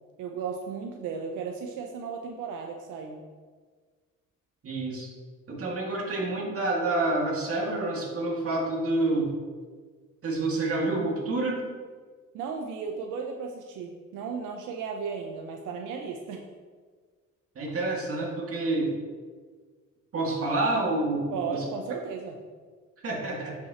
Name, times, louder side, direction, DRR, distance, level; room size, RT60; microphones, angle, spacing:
voice 1, 0.2-3.2 12.3-16.4 21.3-22.4, right 5 dB, 90° right, 2 dB, 0.7 m, -35 dB
voice 2, 4.6-5.1 5.5-9.3 10.2-11.6 17.6-18.9 20.1-21.6 23.0-23.6, right 2 dB, 50° right, -2 dB, 2.1 m, -28 dB
9.7 x 6.2 x 2.9 m, 1.5 s
cardioid pair, 90°, 30 cm